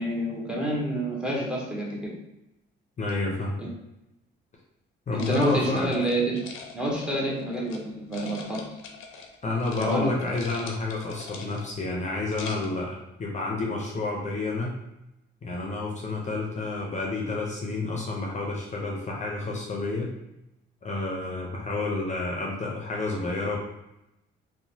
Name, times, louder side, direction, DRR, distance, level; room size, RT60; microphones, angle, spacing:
voice 1, 0.0-2.1 3.6-3.7 5.1-6.4 6.7-8.6 9.8-10.1, right 1 dB, 5° right, -3 dB, 0.9 m, -28 dB
voice 2, 3.0-3.6 5.1-5.9 9.4-14.8 15.4-20.1 20.8-23.6, left 2 dB, 35° left, -2 dB, 0.6 m, -29 dB
sound 1, 5.2-7.8 8.1-9.4 9.6-10.0 10.2-11.8 12.2-12.8, left 4 dB, 90° left, 0.5 m, -42 dB
2.9 x 2.1 x 2.7 m, 0.90 s
cardioid pair, 90°, 20 cm